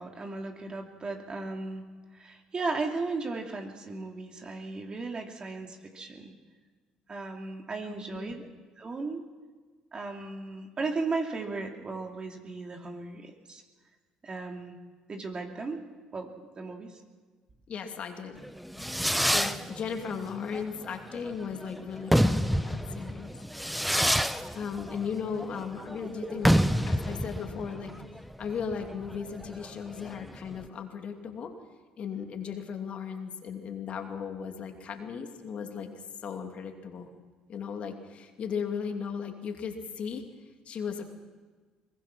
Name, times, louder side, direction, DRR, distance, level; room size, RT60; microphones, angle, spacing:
voice 1, 0.0-1.8 2.1-6.3 7.1-8.5 8.8-9.2 9.9-13.6 14.2-14.8 15.1-15.8 16.1-17.0 26.2-26.9, right 3 dB, 35° right, 2 dB, 2.8 m, -36 dB
voice 2, 17.7-18.4 18.9-23.3 24.5-26.6 26.9-27.9 28.4-31.5 32.0-35.9 36.2-37.1 37.5-40.2 40.7-41.0, left 6 dB, 50° left, 4 dB, 2.7 m, -36 dB
Fireworks, 18.4-30.6, equal, ahead, 0.9 m, -28 dB
23.0 x 20.0 x 6.1 m, 1.4 s
hypercardioid pair, 65°, 3 cm